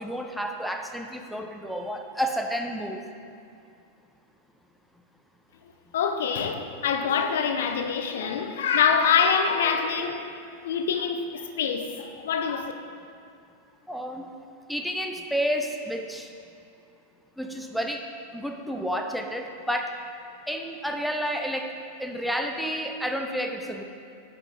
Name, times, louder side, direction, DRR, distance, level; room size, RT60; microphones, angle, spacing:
voice 1, 0.0-3.0 13.9-14.3 14.7-16.3 17.4-18.1 18.3-19.9 20.5-21.7 22.0-23.8, equal, ahead, 0.6 m, -30 dB
voice 2, 5.9-10.3 10.6-12.7, left 6 dB, 60° left, 0.5 m, -25 dB
9.7 x 5.8 x 3.8 m
figure-of-eight pair, 90°, 0 cm